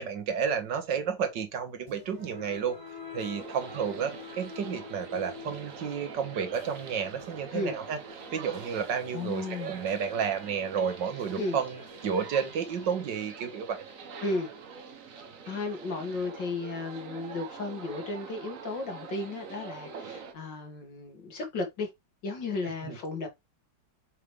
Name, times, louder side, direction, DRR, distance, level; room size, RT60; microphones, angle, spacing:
voice 1, 0.0-2.8 3.1-8.0 8.3-13.8 22.9-23.0, right 7 dB, 75° right, 1.9 m, -31 dB
sound 1, 1.9-14.2, left 4 dB, 25° right, 2.5 m, -48 dB
sound 2, 3.4-20.3, right 5 dB, 55° right, 1.3 m, -45 dB
voice 2, 9.1-9.8 11.4-11.6 14.2-14.5 15.5-21.9 22.2-23.3, left 3 dB, 80° left, 2.9 m, -34 dB
6.7 x 4.8 x 3.3 m
omnidirectional pair, 1.9 m